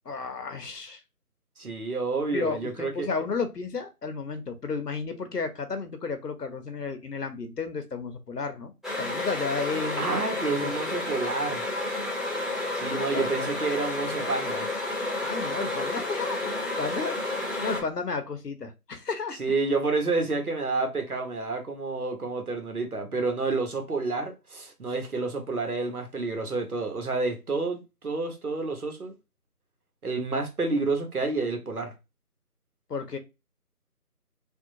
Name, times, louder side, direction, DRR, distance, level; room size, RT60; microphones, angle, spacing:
voice 1, 0.1-1.0 2.3-8.7 9.0-10.2 10.5-10.8 12.9-13.3 15.2-17.2 17.6-19.4 32.9-33.2, left 4 dB, 90° left, 0.9 m, -32 dB
voice 2, 1.6-3.1 10.0-11.7 12.7-14.7 19.4-29.1 30.0-31.9, right 3 dB, 70° right, 1.1 m, -29 dB
sound 1, 8.8-17.8, left 2 dB, ahead, 0.6 m, -31 dB
3.6 x 2.4 x 2.6 m
figure-of-eight pair, 180°, 46 cm